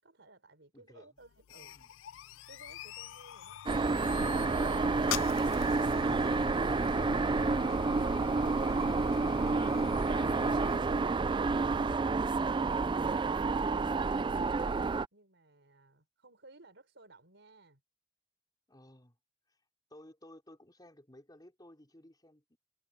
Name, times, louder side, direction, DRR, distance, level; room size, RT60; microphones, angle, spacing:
voice 1, 0.0-1.9 15.1-17.8, right 2 dB, 60° right, 5.3 m, -60 dB
voice 2, 0.7-1.1 1.5-1.9 18.7-19.2 19.5-19.6 19.9-22.6, left 1 dB, 20° left, 4.6 m, -57 dB
sound 1, 1.2-10.8, left 10 dB, 70° left, 0.3 m, -43 dB
sound 2, 3.7-15.1, right 3 dB, 25° right, 0.3 m, -29 dB
head